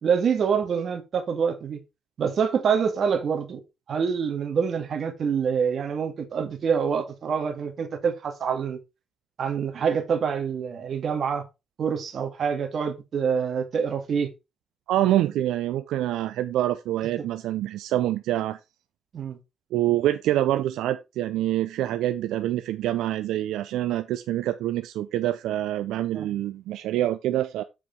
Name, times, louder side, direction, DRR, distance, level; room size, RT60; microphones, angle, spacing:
voice 1, 0.0-1.8 2.2-3.6 3.9-8.8 9.4-11.4 11.8-14.3 17.2-17.3 19.1-19.4 26.1-26.3, right 6 dB, 55° right, 1.9 m, -26 dB
voice 2, 14.9-18.6 19.7-27.6, right 13 dB, 85° right, 0.5 m, -26 dB
7.7 x 4.8 x 4.5 m
cardioid pair, 90°, 0 cm